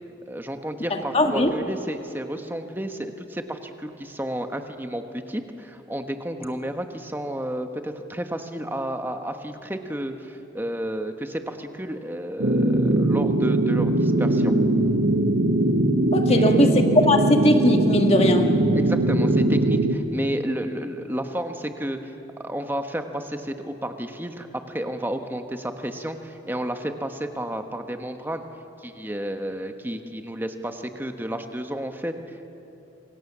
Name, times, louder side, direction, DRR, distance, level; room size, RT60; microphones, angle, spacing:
voice 1, 0.3-14.5 16.3-16.7 18.7-28.4 28.8-32.5, right 1 dB, 10° right, 6 dB, 1.3 m, -31 dB
voice 2, 1.1-1.5 16.1-18.5, left 1 dB, 30° left, 4 dB, 1.7 m, -19 dB
sound 1, 12.4-20.0, right 1 dB, 75° right, 1.7 m, -21 dB
27.5 x 24.5 x 7.4 m, 3.0 s
head